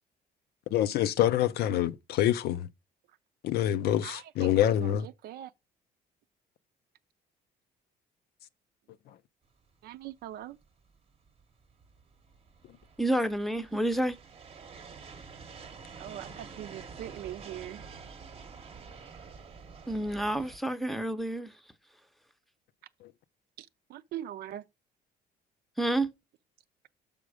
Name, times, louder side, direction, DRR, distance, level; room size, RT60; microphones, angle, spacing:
voice 1, 0.7-2.7 3.4-5.1 23.0-23.1, left 12 dB, 70° left, 0.5 m, -26 dB
voice 2, 4.0-5.5 9.8-10.6 15.9-17.8 23.6-24.7, right 12 dB, 70° right, 0.5 m, -42 dB
sound 1, 9.7-20.6, right 5 dB, 35° right, 0.9 m, -48 dB
voice 3, 13.0-14.2 19.9-21.5 25.8-26.1, right 1 dB, ahead, 0.7 m, -29 dB
6.2 x 5.2 x 4.7 m
cardioid pair, 110°, 17 cm